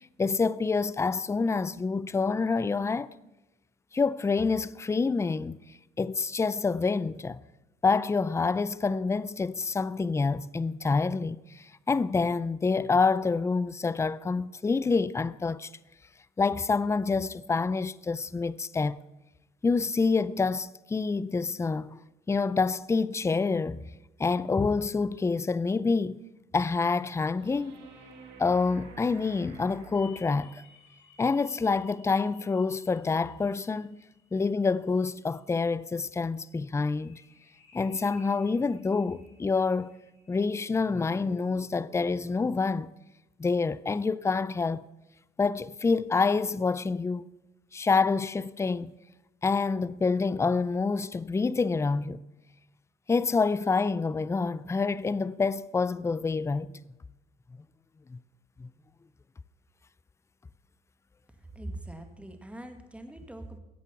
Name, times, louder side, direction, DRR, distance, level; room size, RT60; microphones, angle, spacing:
voice 1, 0.2-3.1 3.9-5.6 6.0-7.4 7.8-15.7 16.4-19.0 19.6-22.0 22.3-23.8 24.2-26.2 26.5-27.8 28.4-30.6 31.2-34.0 34.3-37.2 37.7-40.0 40.3-42.9 43.4-44.8 45.4-47.3 47.7-48.9 49.4-52.2 53.1-56.8 58.1-58.2 58.6-58.7, left 4 dB, 15° left, 0.4 m, -27 dB
sound 1, 27.4-30.7 33.4-33.5, right 2 dB, 85° right, 4.2 m, -50 dB
sound 2, 29.9-35.5 36.8-41.6, left 4 dB, 80° left, 3.9 m, -59 dB
voice 2, 61.6-63.6, right 1 dB, 5° right, 1.9 m, -42 dB
14.0 x 8.1 x 6.8 m
cardioid pair, 85°, 18 cm